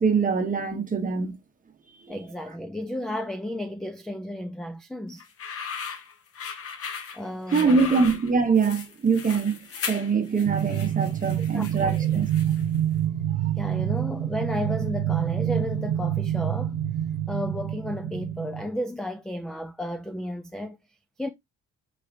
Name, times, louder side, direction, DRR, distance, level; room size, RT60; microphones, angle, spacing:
voice 1, 0.0-1.3 7.5-9.6 9.8-12.2 13.4-13.5, right 5 dB, 25° right, 1.0 m, -23 dB
voice 2, 2.1-5.2 7.1-8.0 11.4-12.1 12.4-12.6 13.6-16.8 17.3-20.8 21.2-21.3, left 1 dB, ahead, 0.3 m, -33 dB
sound 1, 5.2-12.8, left 6 dB, 50° left, 1.0 m, -37 dB
sound 2, 10.4-18.6, right 11 dB, 80° right, 1.0 m, -27 dB
4.8 x 4.1 x 2.5 m
cardioid pair, 145°, 30 cm